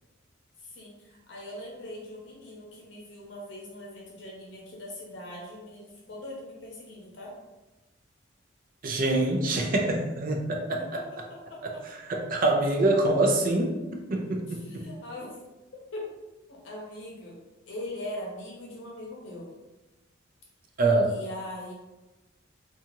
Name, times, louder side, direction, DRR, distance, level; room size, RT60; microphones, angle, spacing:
voice 1, 0.6-7.3 10.8-11.0 11.3-11.8 14.5-15.4 15.9-16.1 16.5-17.4 17.7-19.5 21.1-21.7, left 1 dB, 65° left, -3 dB, 0.7 m, -41 dB
voice 2, 8.8-10.8 11.6-11.7 12.1-13.8 14.1-14.9 20.8-21.1, right 2 dB, 45° right, 2 dB, 0.4 m, -25 dB
2.7 x 2.3 x 2.9 m, 1.1 s
head